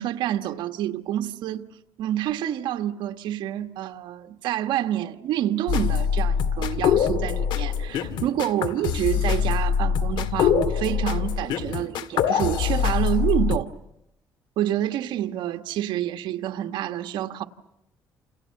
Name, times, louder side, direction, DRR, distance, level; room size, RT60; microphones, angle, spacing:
voice 1, 0.0-1.7 2.0-13.7 14.6-17.4, right 12 dB, 85° right, 1.6 m, -28 dB
sound 1, 5.7-13.6, left 8 dB, 80° left, 2.0 m, -24 dB
29.5 x 29.0 x 6.7 m
cardioid pair, 120°, 8 cm